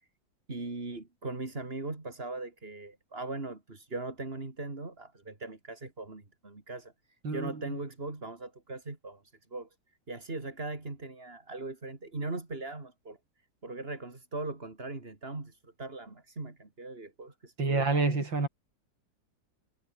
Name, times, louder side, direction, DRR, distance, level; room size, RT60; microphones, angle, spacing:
voice 1, 0.5-6.9 7.3-9.7 10.1-13.2 13.6-17.9, right 2 dB, 30° right, 3.4 m, -39 dB
voice 2, 7.2-7.8 17.6-18.5, right 3 dB, 85° right, 5.5 m, -28 dB
omnidirectional pair, 2.0 m